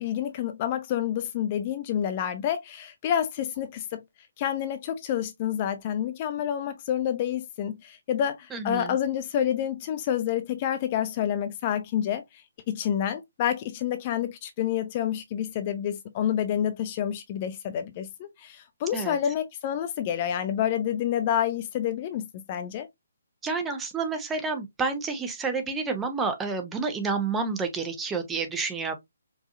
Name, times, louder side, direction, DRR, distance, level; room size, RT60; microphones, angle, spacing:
voice 1, 0.0-4.0 4.4-12.2 12.7-22.9, left 10 dB, 30° left, 0.5 m, -28 dB
voice 2, 8.5-8.9 18.9-19.2 23.4-28.9, right 4 dB, 10° right, 0.7 m, -29 dB
4.7 x 2.6 x 2.5 m
figure-of-eight pair, 135°, 0 cm